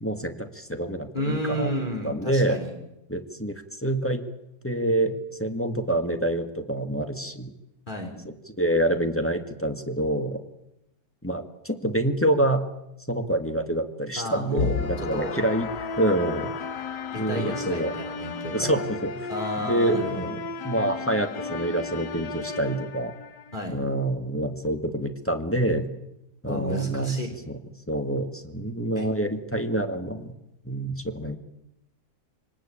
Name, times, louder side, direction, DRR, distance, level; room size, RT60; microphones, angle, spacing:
voice 1, 0.0-1.7 2.0-2.6 3.1-4.2 4.6-5.1 5.4-7.5 8.6-10.4 11.2-12.6 13.1-15.7 16.0-16.5 17.2-17.9 18.5-19.3 19.6-20.4 20.6-23.1 23.7-25.9 26.4-27.2 27.5-27.6 27.9-30.3 30.6-31.4, right 1 dB, 10° left, 6 dB, 1.8 m, -26 dB
voice 2, 1.1-2.7 7.9-8.1 14.2-15.3 17.1-18.8 19.3-20.3 23.5-23.8 26.5-27.3 29.0-29.1, equal, 25° left, 2 dB, 3.6 m, -32 dB
sound 1, 14.6-23.6, left 5 dB, 80° left, 1.9 m, -33 dB
25.5 x 19.5 x 8.8 m, 0.87 s
omnidirectional pair, 1.8 m